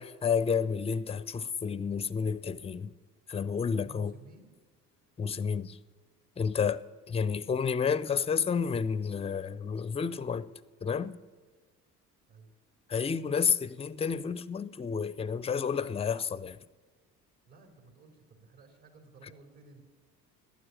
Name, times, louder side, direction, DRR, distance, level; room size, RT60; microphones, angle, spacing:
voice 1, 0.0-2.9 3.3-4.1 5.2-5.8 6.4-10.5 10.8-11.2 12.9-16.6, left 6 dB, 15° left, 0.5 m, -30 dB
voice 2, 3.7-4.6 12.3-12.5 17.5-19.8, right 2 dB, 55° right, 3.5 m, -55 dB
12.0 x 9.5 x 9.0 m
hypercardioid pair, 55°, 46 cm